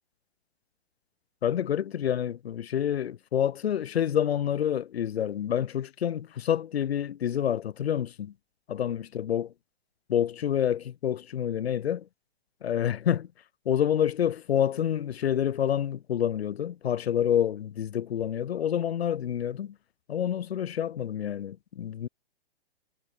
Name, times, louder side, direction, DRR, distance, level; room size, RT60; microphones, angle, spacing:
voice 1, 1.4-8.3 8.7-9.5 10.1-12.1 12.6-13.3 13.6-19.8 20.1-22.1, left 9 dB, 90° left, 0.9 m, -28 dB
hypercardioid pair, 160°, 30 cm